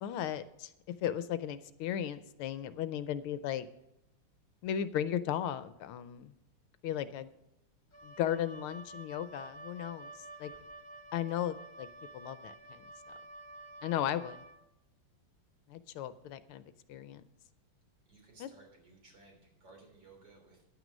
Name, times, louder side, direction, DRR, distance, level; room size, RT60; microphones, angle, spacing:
voice 1, 0.0-0.7 1.0-3.7 4.6-6.3 6.8-7.3 8.0-10.1 10.4-10.5 11.1-11.9 12.1-12.8 13.8-14.4 15.7-17.2 18.4-18.5, left 10 dB, 80° left, 13 dB, 1.5 m, -36 dB
Wind instrument woodwind instrument, 7.9-14.6, right 2 dB, 25° left, 1.0 m, -50 dB
voice 2, 18.1-20.6, right 3 dB, 55° right, 0 dB, 4.1 m, -58 dB
10.5 x 9.3 x 5.2 m, 0.86 s
omnidirectional pair, 2.4 m